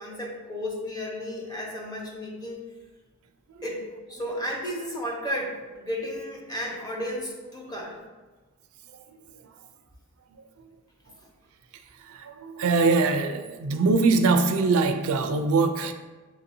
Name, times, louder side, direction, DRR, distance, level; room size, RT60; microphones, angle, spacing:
voice 1, 0.0-2.6 3.6-8.0, equal, 20° left, 0.9 m, -33 dB
voice 2, 8.9-9.5 10.3-10.4 11.7-15.9, right 3 dB, 80° right, 0.4 m, -24 dB
7.2 x 2.6 x 2.6 m
head